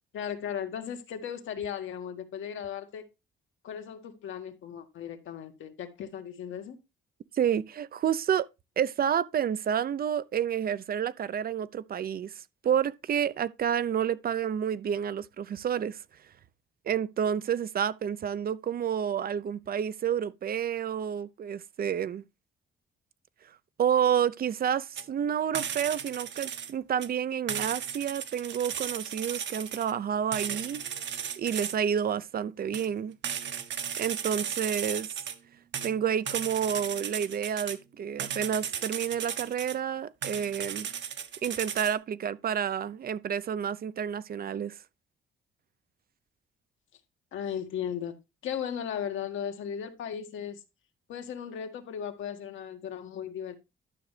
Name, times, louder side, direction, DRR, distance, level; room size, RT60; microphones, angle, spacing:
voice 1, 0.1-3.0 3.6-6.8 47.3-48.2 48.4-50.6 51.1-53.5, left 8 dB, 80° left, 1.8 m, -36 dB
voice 2, 7.3-8.5 8.8-16.0 16.9-22.2 23.8-30.8 31.4-33.1 34.0-35.1 35.8-40.9 41.4-44.8, right 8 dB, 50° right, 0.6 m, -29 dB
sound 1, 25.0-25.1 25.5-26.7 27.0-27.1 27.5-29.9 30.3-31.8 32.7-32.9 33.2-35.4 35.7-37.8 38.2-39.7 40.2-41.9, right 8 dB, 65° right, 1.4 m, -35 dB
11.5 x 6.5 x 3.3 m
cardioid pair, 90°, 20 cm